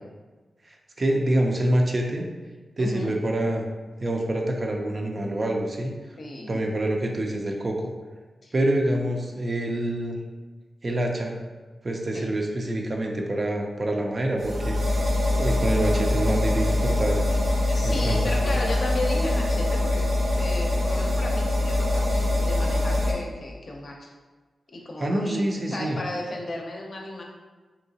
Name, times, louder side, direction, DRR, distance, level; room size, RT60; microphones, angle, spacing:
voice 1, 0.7-2.3 2.8-3.7 4.0-5.9 6.5-7.9 8.5-10.2 10.8-11.3 11.8-14.8 15.4-17.2 17.8-18.2 25.0-26.0, right 1 dB, 40° right, 2 dB, 0.4 m, -26 dB
voice 2, 2.8-3.2 6.2-6.6 8.4-8.5 12.1-12.3 17.7-20.1 20.3-24.1 24.7-27.2, left 1 dB, 50° left, 0 dB, 0.6 m, -34 dB
sound 1, 14.4-23.1, left 1 dB, 80° right, 0.8 m, -23 dB
3.2 x 2.7 x 2.7 m, 1.3 s
wide cardioid pair, 95°, 0 cm